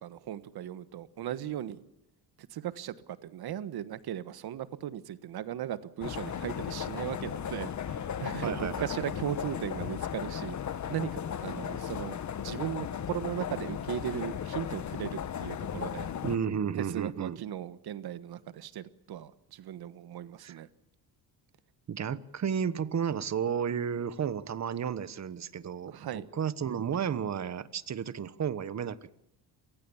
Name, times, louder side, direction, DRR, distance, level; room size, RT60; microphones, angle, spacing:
voice 1, 0.0-1.8 2.5-16.1 16.8-20.7 25.9-26.2, right 11 dB, 65° right, 14 dB, 1.3 m, -37 dB
sound 1, 6.0-16.4, left 9 dB, 45° left, 1.2 m, -36 dB
voice 2, 8.4-9.1 16.2-17.4 20.4-20.6 21.9-29.1, right 7 dB, 40° right, 16 dB, 1.2 m, -33 dB
27.0 x 19.5 x 7.1 m, 0.84 s
cardioid pair, 105°, 41 cm